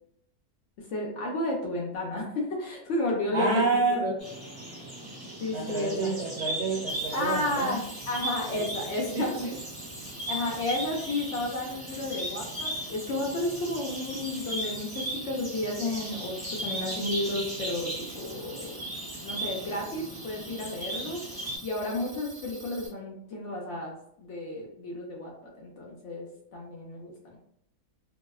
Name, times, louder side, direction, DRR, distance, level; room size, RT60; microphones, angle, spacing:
voice 1, 0.8-4.1 5.4-6.1 7.1-9.5 10.3-18.9 19.2-21.2 21.6-27.4, left 2 dB, 65° left, -2 dB, 0.7 m, -32 dB
voice 2, 3.3-4.1 5.5-7.8 8.5-8.6 9.1-9.5, right 3 dB, 90° right, -2 dB, 1.1 m, -29 dB
sound 1, 4.2-21.6, right 1 dB, 20° right, 0.6 m, -37 dB
sound 2, 6.9-22.9, right 2 dB, 65° right, 0.5 m, -47 dB
2.7 x 2.0 x 2.2 m, 0.72 s
omnidirectional pair, 1.6 m